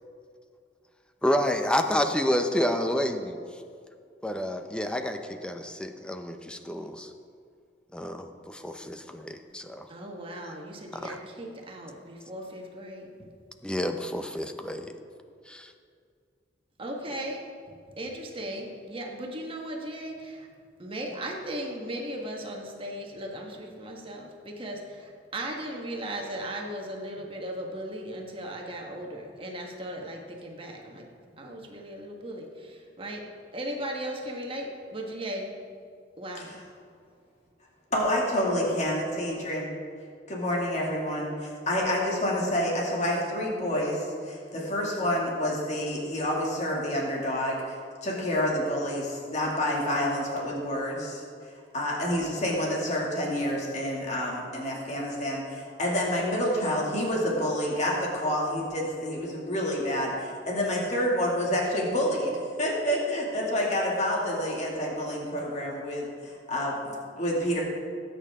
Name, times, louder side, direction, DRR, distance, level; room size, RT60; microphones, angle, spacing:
voice 1, 1.2-3.4 4.2-7.1 7.9-9.9 10.9-11.2 13.6-14.9 15.5-15.7, equal, 5° left, 6 dB, 0.7 m, -29 dB
voice 2, 9.9-13.3 16.8-20.5 20.8-35.5 36.2-36.6, right 1 dB, 30° right, 0 dB, 1.6 m, -37 dB
voice 3, 37.9-39.7 40.3-51.2 51.7-67.6, equal, 40° left, -3 dB, 2.4 m, -28 dB
18.5 x 9.0 x 3.7 m, 2.3 s
head